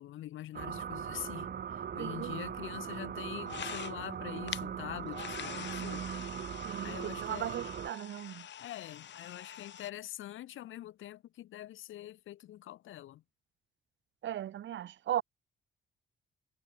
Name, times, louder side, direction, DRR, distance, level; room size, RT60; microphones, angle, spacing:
voice 1, 0.0-6.1 6.8-7.6 8.6-13.2, left 13 dB, 80° left, 3.3 m, -44 dB
sound 1, 0.5-7.9, right 8 dB, 50° right, 2.3 m, -40 dB
voice 2, 2.0-2.4 6.6-8.5 14.2-15.2, right 11 dB, 70° right, 1.4 m, -37 dB
sound 2, 3.4-4.1 4.5-4.6 5.1-9.9, left 10 dB, 65° left, 3.7 m, -45 dB
cardioid pair, 90°, 20 cm